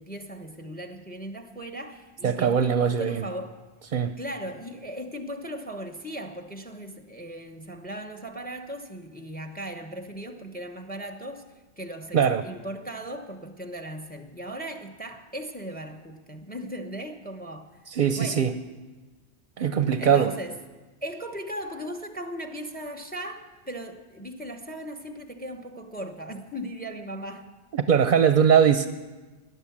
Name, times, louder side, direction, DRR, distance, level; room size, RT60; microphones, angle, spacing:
voice 1, 0.0-3.6 4.2-11.5 11.8-17.9 18.1-18.5 20.0-20.6 21.0-27.5 28.2-28.3, right 1 dB, 10° left, 7 dB, 0.9 m, -38 dB
voice 2, 2.2-3.2 3.9-4.1 12.1-12.4 18.0-18.5 19.6-20.3 27.7-28.9, right 7 dB, 55° right, 10 dB, 0.8 m, -21 dB
18.0 x 10.5 x 7.3 m, 1.3 s
omnidirectional pair, 1.1 m